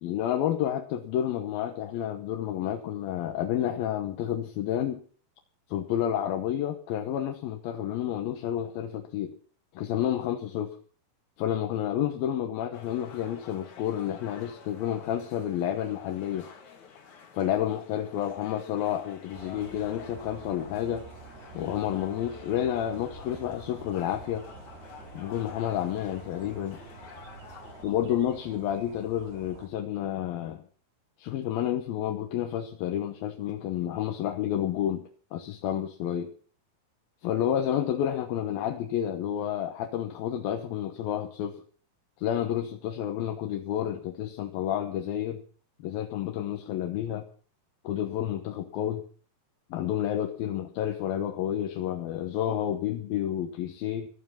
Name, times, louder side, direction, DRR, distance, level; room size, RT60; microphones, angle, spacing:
voice 1, 0.0-5.0 5.7-9.3 9.7-10.8 11.4-16.5 17.3-21.1 21.5-24.4 25.1-26.8 27.8-30.6 31.2-36.3 37.2-41.6 42.2-45.4 45.8-47.2 47.8-49.0 49.7-54.1, left 10 dB, 75° left, 4 dB, 2.9 m, -30 dB
sound 1, 12.7-27.8, left 6 dB, 55° left, 3.4 m, -50 dB
sound 2, 19.3-29.7, right 4 dB, 80° right, 5.0 m, -48 dB
16.5 x 12.0 x 5.8 m, 0.43 s
omnidirectional pair, 4.6 m